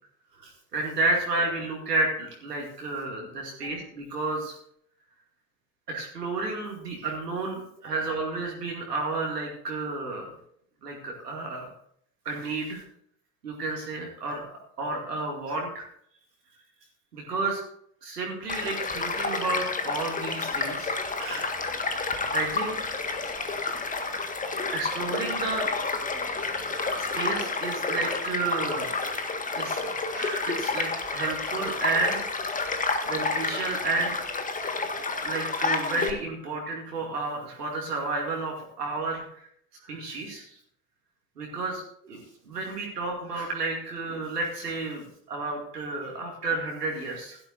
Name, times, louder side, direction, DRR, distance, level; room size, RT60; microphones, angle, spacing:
voice 1, 0.4-4.6 5.9-10.3 10.8-11.7 12.2-12.8 13.4-15.9 17.1-17.6 18.0-21.5 22.3-22.7 24.7-25.7 26.9-28.9 29.5-29.8 30.1-32.2 33.0-34.2 35.2-39.4 39.8-40.6 41.4-42.2 42.5-47.4, right 3 dB, 75° right, -1 dB, 2.5 m, -31 dB
Child speech kid speaking / Stream / Car passing by, 18.5-36.1, left 3 dB, 15° left, 1.7 m, -30 dB
17.0 x 12.5 x 2.6 m, 0.68 s
figure-of-eight pair, 75°, 48 cm